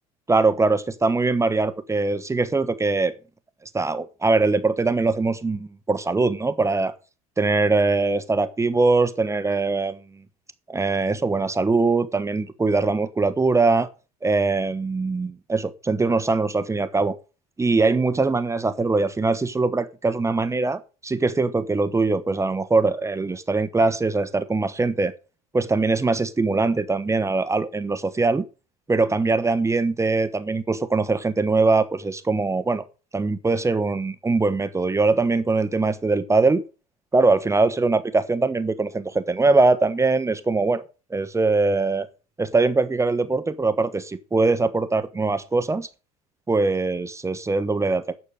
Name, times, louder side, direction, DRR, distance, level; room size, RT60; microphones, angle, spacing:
voice 1, 0.3-3.1 3.7-6.9 7.4-10.0 10.7-13.9 14.2-17.2 17.6-25.1 25.5-28.4 28.9-32.8 33.1-36.6 37.1-40.8 41.1-42.1 42.4-45.9 46.5-48.2, right 3 dB, 15° right, 1.0 m, -22 dB
10.0 x 6.8 x 6.5 m
figure-of-eight pair, 65°, 19 cm